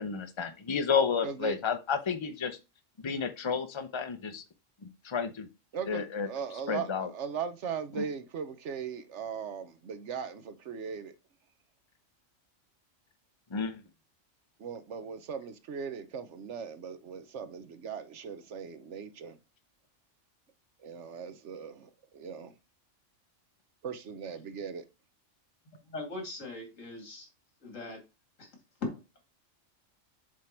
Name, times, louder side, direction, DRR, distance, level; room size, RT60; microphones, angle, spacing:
voice 1, 0.0-2.6 3.0-4.4 5.0-5.5 5.8-7.1 8.0-8.1 13.5-13.8, left 6 dB, 25° left, 0.8 m, -31 dB
voice 2, 1.2-1.6 5.7-11.1 14.6-19.4 20.8-22.5 23.8-24.9, right 6 dB, 65° right, 1.1 m, -39 dB
voice 3, 25.9-27.3 27.6-28.0 28.4-28.5 28.8-29.2, left 2 dB, 85° left, 2.6 m, -39 dB
7.5 x 3.6 x 4.4 m
omnidirectional pair, 1.3 m